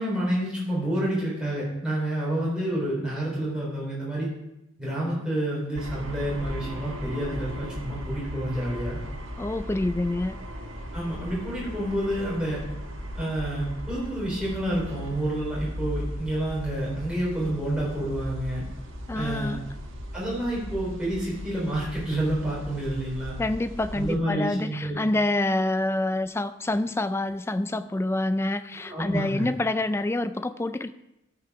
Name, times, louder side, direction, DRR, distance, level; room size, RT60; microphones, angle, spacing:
voice 1, 0.0-4.3 4.8-9.0 10.9-12.6 13.1-18.6 19.1-19.6 20.1-23.4 23.9-25.0 28.8-29.5, right 1 dB, 5° right, -6 dB, 3.8 m, -29 dB
sound 1, 5.7-24.2, equal, 70° right, 1.5 m, -37 dB
voice 2, 9.4-10.4 19.1-19.7 23.4-30.9, left 2 dB, 15° left, 12 dB, 0.3 m, -27 dB
13.0 x 5.9 x 4.7 m, 0.87 s
head